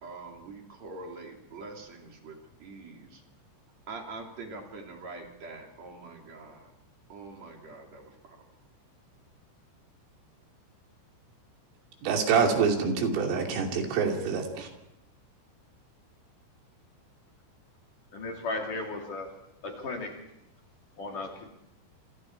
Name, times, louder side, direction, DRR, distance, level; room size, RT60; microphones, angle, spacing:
voice 1, 0.0-3.2 3.9-6.7 7.1-8.5, right 3 dB, 40° right, 2 dB, 3.5 m, -44 dB
voice 2, 12.0-14.7, right 5 dB, 80° right, 2 dB, 5.3 m, -26 dB
voice 3, 18.1-19.3 19.6-20.1 21.0-21.5, left 2 dB, 50° left, 1 dB, 3.5 m, -35 dB
27.0 x 26.5 x 4.6 m, 0.82 s
omnidirectional pair, 5.7 m